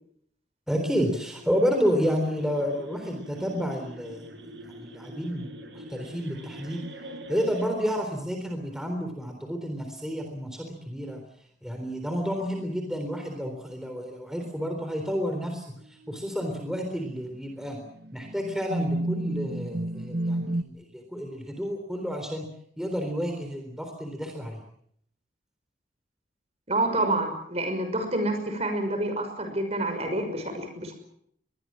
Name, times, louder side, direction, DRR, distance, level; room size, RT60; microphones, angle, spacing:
voice 1, 0.7-6.8 7.3-11.2 11.6-17.8 18.1-22.5 22.8-24.6, equal, 5° right, 4 dB, 3.8 m, -30 dB
sound 1, 0.9-7.7, right 1 dB, 75° right, 7.3 m, -44 dB
sound 2, 16.1-16.4 17.1-17.2 18.0-20.6, right 1 dB, 60° right, 1.3 m, -30 dB
voice 2, 26.7-30.9, right 1 dB, 35° right, 7 dB, 6.1 m, -28 dB
23.5 x 21.5 x 7.6 m, 0.70 s
head